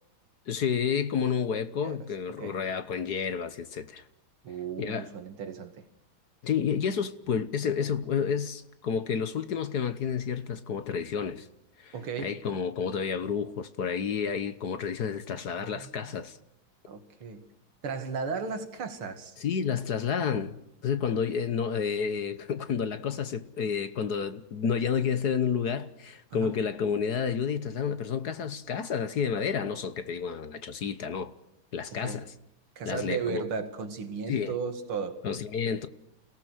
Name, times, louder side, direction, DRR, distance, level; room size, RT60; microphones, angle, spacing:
voice 1, 0.5-4.0 4.8-5.1 6.4-11.5 11.8-16.4 19.4-31.3 31.7-32.2 32.8-33.4 34.3-34.5 35.2-35.9, left 7 dB, 55° left, 1.5 m, -30 dB
voice 2, 4.4-5.9 11.9-12.3 15.3-16.2 16.9-17.4 17.8-19.4 26.3-26.6 31.9-32.3 32.8-35.2, right 5 dB, 85° right, 2.9 m, -35 dB
29.5 x 18.0 x 6.3 m
omnidirectional pair, 2.3 m